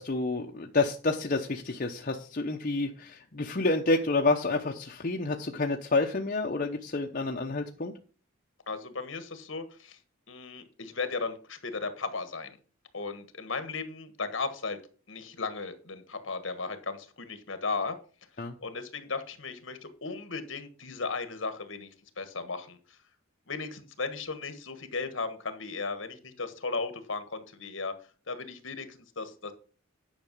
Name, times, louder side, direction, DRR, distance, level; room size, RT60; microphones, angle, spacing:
voice 1, 0.0-7.9 18.4-18.5, left 3 dB, 40° left, 1 dB, 0.8 m, -29 dB
voice 2, 8.7-10.0 10.3-12.6 12.9-14.8 15.1-18.0 18.6-21.9 22.2-23.0 23.5-27.9 28.3-29.5, left 4 dB, 65° left, 10 dB, 1.4 m, -36 dB
10.0 x 5.7 x 5.4 m, 0.39 s
head